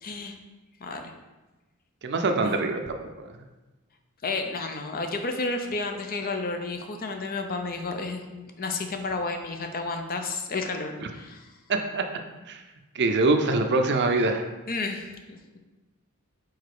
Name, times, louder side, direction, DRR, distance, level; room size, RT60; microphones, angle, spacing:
voice 1, 0.0-0.4 0.8-1.1 2.3-2.6 4.2-11.5 14.7-15.6, left 3 dB, 40° left, 5 dB, 0.6 m, -32 dB
voice 2, 2.0-2.9 11.7-12.0 12.5-12.6 12.9-14.4, right 3 dB, 50° right, 5 dB, 0.5 m, -24 dB
4.8 x 4.1 x 4.8 m, 1.1 s
head